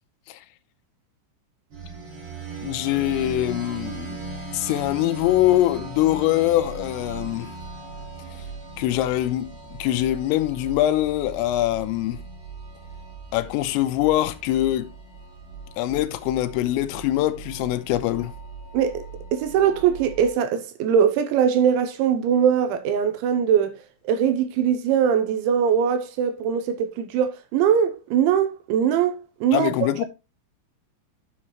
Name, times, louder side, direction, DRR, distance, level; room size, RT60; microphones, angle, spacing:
sound 1, 1.7-20.3, right 3 dB, 35° right, 2.5 m, -38 dB
voice 1, 2.6-4.2 4.5-7.5 8.8-9.5 9.8-12.2 13.3-14.9 15.8-18.3 29.5-30.1, left 14 dB, 85° left, 3.4 m, -23 dB
voice 2, 19.3-23.8 24.1-29.7, right 8 dB, 80° right, 2.9 m, -21 dB
9.9 x 7.4 x 3.1 m
omnidirectional pair, 5.8 m